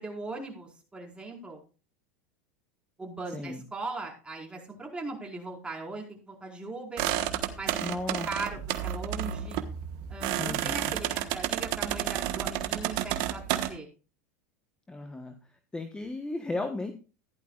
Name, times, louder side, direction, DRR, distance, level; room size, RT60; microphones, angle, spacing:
voice 1, 0.0-1.6 3.0-7.1 7.5-9.6 10.1-13.9, right 3 dB, 10° right, -1 dB, 4.7 m, -39 dB
voice 2, 3.3-3.6 7.8-8.3 10.4-11.0 14.9-15.4 15.7-16.9, left 2 dB, 10° left, 6 dB, 1.2 m, -35 dB
sound 1, 7.0-13.7, right 12 dB, 55° right, 1.3 m, -31 dB
15.0 x 11.0 x 2.4 m, 0.35 s
hypercardioid pair, 110°, 9 cm